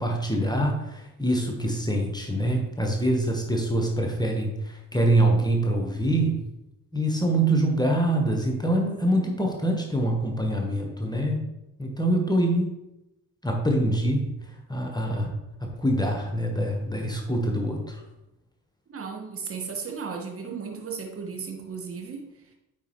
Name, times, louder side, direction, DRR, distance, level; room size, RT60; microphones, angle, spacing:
voice 1, 0.0-6.4 6.9-11.4 11.8-12.7 13.4-14.4 14.7-15.3 15.6-18.0, right 1 dB, 10° left, 1 dB, 1.3 m, -25 dB
voice 2, 18.9-22.3, right 5 dB, 30° right, 1 dB, 1.6 m, -35 dB
9.0 x 4.3 x 3.2 m, 0.92 s
figure-of-eight pair, 45°, 45 cm